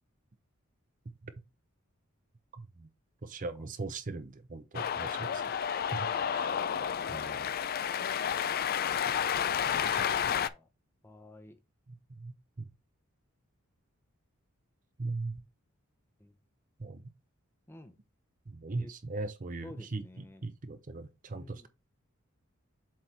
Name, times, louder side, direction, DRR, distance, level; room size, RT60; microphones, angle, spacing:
voice 1, 3.2-5.4 5.7-6.5 7.1-7.5 12.2-12.3 12.6-12.7 15.0-15.3 16.8-17.0 18.6-21.7, right 3 dB, 40° right, 0.6 m, -39 dB
Cheering, 4.7-10.5, left 8 dB, 45° left, 0.3 m, -31 dB
voice 2, 5.2-5.6 6.1-6.4 9.8-10.6 11.0-11.6 16.2-16.3 17.7-17.9 18.8-18.9 19.6-20.4 21.3-21.7, left 1 dB, 10° left, 0.7 m, -52 dB
7.5 x 4.3 x 3.3 m
head